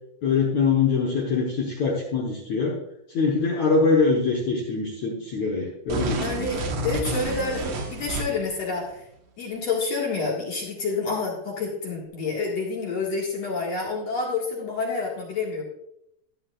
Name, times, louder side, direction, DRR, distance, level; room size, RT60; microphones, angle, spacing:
voice 1, 0.2-2.8 3.1-6.2, left 4 dB, 65° left, -1 dB, 1.8 m, -23 dB
sound 1, 5.9-8.5, right 2 dB, 70° right, 1.6 m, -29 dB
voice 2, 6.2-9.0 9.4-15.6, left 4 dB, 50° left, -2 dB, 2.4 m, -28 dB
14.5 x 11.0 x 2.5 m, 0.78 s
omnidirectional pair, 5.1 m